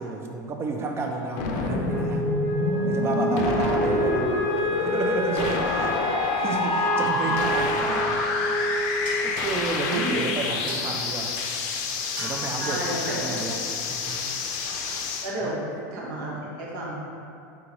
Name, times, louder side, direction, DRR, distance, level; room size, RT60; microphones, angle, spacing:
voice 1, 0.0-2.3 2.8-6.0 6.4-8.2 9.2-11.7 12.2-14.2 15.4-15.5, right 3 dB, 25° right, 3 dB, 0.4 m, -31 dB
sound 1, 1.4-15.3, left 4 dB, 60° left, 0.5 m, -28 dB
Wind instrument woodwind instrument, 1.8-10.3, right 1 dB, 25° left, 0.9 m, -29 dB
sound 2, 9.0-14.3, right 1 dB, 45° right, 1.2 m, -45 dB
voice 2, 9.9-10.2 12.6-13.4 15.2-15.6 15.9-16.9, right 1 dB, 65° right, -5 dB, 1.1 m, -31 dB
3.8 x 3.7 x 2.9 m, 2.6 s
supercardioid pair, 120°, 11 cm